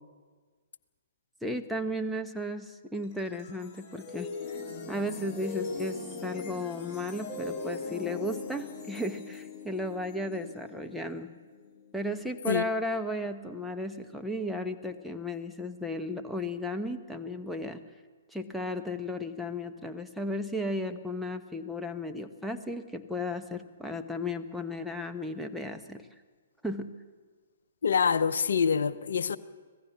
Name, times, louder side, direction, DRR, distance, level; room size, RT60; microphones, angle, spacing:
voice 1, 1.4-4.3 4.9-11.3 11.9-17.8 18.3-26.1 26.6-27.0, left 1 dB, ahead, 1.1 m, -34 dB
sound 1, 2.9-12.2, left 4 dB, 20° left, 4.3 m, -40 dB
voice 2, 27.8-29.4, left 6 dB, 60° left, 0.9 m, -25 dB
25.5 x 17.5 x 7.2 m
figure-of-eight pair, 120°, 0 cm